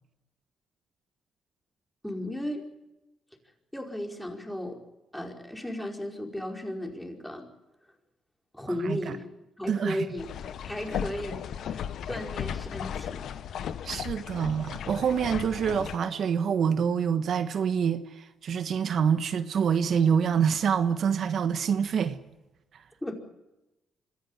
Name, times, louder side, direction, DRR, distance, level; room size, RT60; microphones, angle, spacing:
voice 1, 2.0-2.7 3.7-4.8 5.1-7.4 8.5-9.3 9.6-10.3 10.7-11.4 11.7-13.3 23.0-23.1, left 1 dB, 5° left, 4.8 m, -35 dB
voice 2, 8.8-9.2 9.7-10.1 13.8-22.2, right 7 dB, 60° right, 1.3 m, -26 dB
sound 1, 10.2-16.0, left 9 dB, 70° left, 1.1 m, -36 dB
25.5 x 14.0 x 9.8 m
cardioid pair, 90°, 0 cm